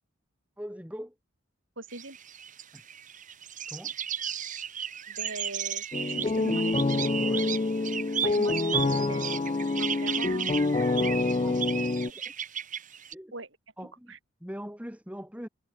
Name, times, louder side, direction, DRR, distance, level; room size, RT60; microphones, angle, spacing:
voice 1, 0.6-1.2 2.7-2.8 3.7-4.0 7.2-7.5 11.4-12.3 13.1-13.3 13.8-15.5, equal, 5° right, 3.5 m, -42 dB
voice 2, 1.8-2.2 5.1-6.7 8.2-9.3 9.8-10.5 11.7-12.1 13.3-13.5 14.1-14.2, right 2 dB, 70° right, 8.0 m, -41 dB
sound 1, 1.9-13.1, right 8 dB, 40° right, 2.8 m, -35 dB
sound 2, 5.9-12.1, left 3 dB, 30° left, 0.5 m, -27 dB
head